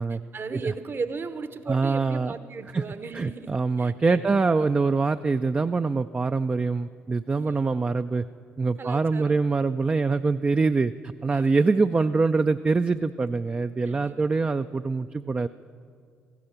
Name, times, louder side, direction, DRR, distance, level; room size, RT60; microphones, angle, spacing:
voice 1, 0.3-4.6 7.3-7.6 8.8-9.3 11.3-11.5 13.9-14.1, right 4 dB, 45° right, 12 dB, 0.9 m, -36 dB
voice 2, 1.7-2.3 2.7-2.8 3.1-8.2 8.6-15.5, right 4 dB, 25° right, 9 dB, 0.3 m, -24 dB
15.0 x 12.0 x 5.8 m, 2.2 s
hypercardioid pair, 55°, 5 cm